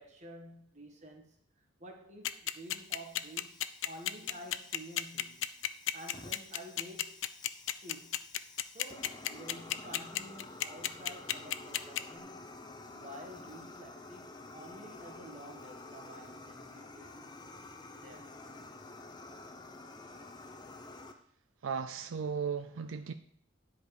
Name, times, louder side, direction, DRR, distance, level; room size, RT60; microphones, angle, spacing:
voice 1, 0.0-3.6 3.8-7.2 7.8-8.2 8.6-12.4 12.9-17.3 18.0-18.4, right 1 dB, 35° right, 1.5 m, -50 dB
sound 1, 2.2-12.0, left 12 dB, 70° left, 0.5 m, -32 dB
Fire, 2.5-21.1, left 2 dB, 20° left, 0.7 m, -50 dB
voice 2, 21.6-23.1, right 6 dB, 85° right, 0.5 m, -36 dB
10.5 x 5.2 x 4.8 m
head